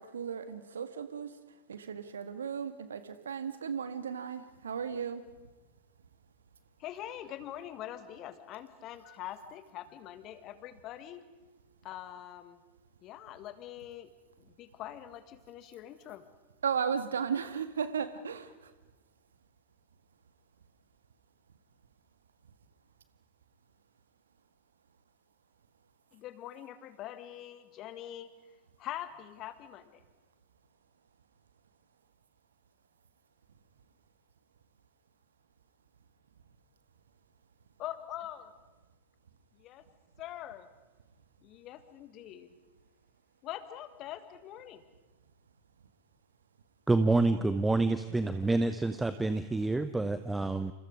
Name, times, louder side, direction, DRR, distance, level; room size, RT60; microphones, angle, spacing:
voice 1, 0.0-1.3 1.7-5.2 16.6-18.7, right 7 dB, 70° right, 11 dB, 1.8 m, -35 dB
voice 2, 6.8-11.2 11.8-12.6 13.0-14.1 14.4-16.2 26.1-28.3 28.8-30.0 37.8-38.5 39.5-39.8 40.2-40.7 41.4-42.6 43.4-44.8, left 12 dB, 35° left, 12 dB, 1.9 m, -44 dB
voice 3, 46.9-50.7, right 2 dB, 10° right, 11 dB, 0.9 m, -28 dB
28.5 x 28.0 x 5.1 m, 1.2 s
figure-of-eight pair, 90°, 0 cm